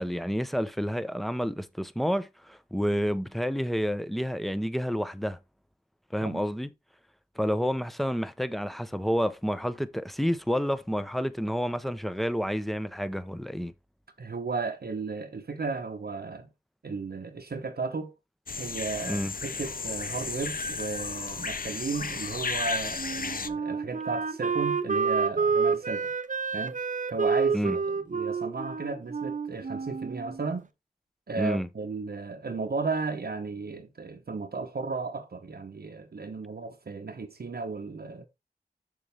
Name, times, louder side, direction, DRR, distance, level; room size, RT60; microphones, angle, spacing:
voice 1, 0.0-5.4 6.1-6.7 7.4-13.7 19.1-19.3 27.5-27.8 31.4-31.7, equal, ahead, 0.9 m, -29 dB
voice 2, 14.2-16.5 16.8-18.1 18.6-26.1 26.5-26.8 27.1-30.7 31.3-38.2, right 4 dB, 75° right, 1.0 m, -34 dB
sound 1, 18.5-23.5, left 4 dB, 60° left, 0.7 m, -33 dB
Wind instrument woodwind instrument, 23.0-30.5, right 5 dB, 50° right, 0.7 m, -29 dB
7.0 x 6.7 x 3.5 m
wide cardioid pair, 45°, 16 cm